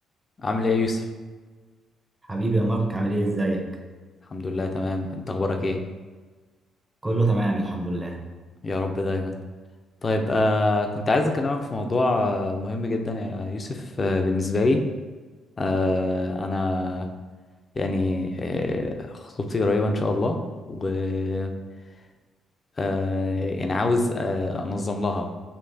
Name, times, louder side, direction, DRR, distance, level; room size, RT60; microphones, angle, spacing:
voice 1, 0.4-1.0 4.3-5.8 8.6-9.4 10.0-14.8 15.6-17.1 17.8-20.4 20.7-21.5 22.8-25.3, left 2 dB, 35° left, 4 dB, 0.6 m, -25 dB
voice 2, 2.3-3.7 7.0-8.2, right 2 dB, 15° right, 1 dB, 0.8 m, -24 dB
6.6 x 2.9 x 2.7 m, 1.3 s
cardioid pair, 90°, 0 cm